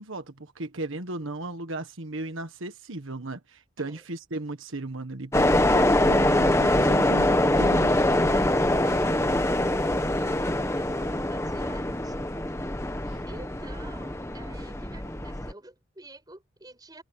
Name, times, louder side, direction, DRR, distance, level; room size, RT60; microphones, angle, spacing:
voice 1, 0.0-8.0 13.1-13.2, right 2 dB, 75° right, 1.5 m, -36 dB
sound 1, 5.3-15.5, left 1 dB, 15° left, 1.3 m, -24 dB
voice 2, 8.3-12.2 13.3-17.0, right 1 dB, 20° right, 4.9 m, -47 dB
head